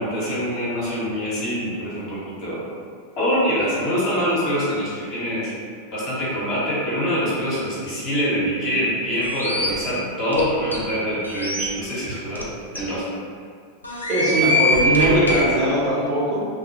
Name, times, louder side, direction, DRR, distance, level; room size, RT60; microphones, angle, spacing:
voice 1, 0.0-2.6 3.2-5.5 5.9-12.4 12.7-13.0 15.0-15.5, equal, 40° left, -9 dB, 0.9 m, -24 dB
sound 1, 9.2-9.7 10.3-10.4 10.7-10.8 11.2-11.6 12.4-12.5 12.8-12.9 13.8-15.4, left 1 dB, 80° left, 0.3 m, -23 dB
voice 2, 14.1-16.5, right 1 dB, 35° right, -8 dB, 0.8 m, -20 dB
2.1 x 2.0 x 2.9 m, 2.1 s
figure-of-eight pair, 90°, 0 cm